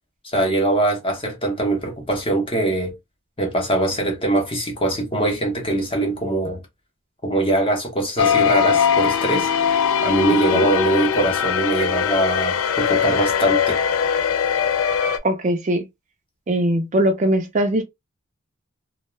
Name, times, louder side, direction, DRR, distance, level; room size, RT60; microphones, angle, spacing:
voice 1, 0.2-2.9 3.4-6.6 7.2-9.5 10.0-13.8, right 2 dB, 25° left, 0.7 m, -22 dB
sound 1, 8.2-15.2, left 7 dB, 80° left, 0.4 m, -20 dB
voice 2, 15.2-15.8 16.5-17.8, right 1 dB, 35° right, 0.4 m, -20 dB
2.2 x 2.1 x 3.0 m
head